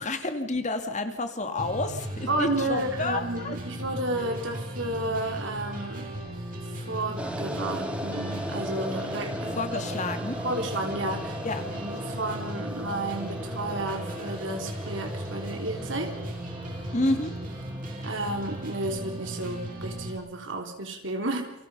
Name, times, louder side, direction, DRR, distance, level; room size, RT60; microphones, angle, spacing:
voice 1, 0.0-3.5 9.6-10.4 11.4-11.6 16.9-17.3, left 2 dB, 40° left, 7 dB, 2.4 m, -29 dB
sound 1, 1.6-20.1, right 1 dB, 45° right, 6.7 m, -37 dB
voice 2, 2.3-6.1 6.6-9.6 10.4-11.4 11.7-16.1 18.0-21.5, right 2 dB, 70° right, 4 dB, 3.6 m, -32 dB
sound 2, 7.2-19.4, equal, 5° right, 1.6 m, -38 dB
29.0 x 24.5 x 5.6 m, 0.82 s
head